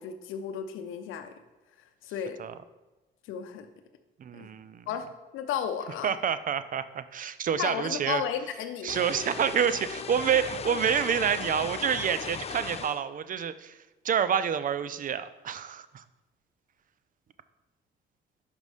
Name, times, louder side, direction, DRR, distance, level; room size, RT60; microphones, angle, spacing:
voice 1, 0.0-1.3 2.0-2.4 3.3-3.7 4.3-4.5 4.9-5.1 5.3-6.2 7.6-8.9, left 8 dB, 90° left, 7 dB, 0.7 m, -33 dB
voice 2, 4.2-4.9 6.0-8.2 8.8-13.8 14.0-16.0, right 8 dB, 45° right, 13 dB, 0.4 m, -28 dB
sound 1, 8.9-13.0, left 7 dB, 30° left, 0.4 m, -37 dB
5.3 x 5.2 x 4.8 m, 1.1 s
cardioid pair, 90°, 20 cm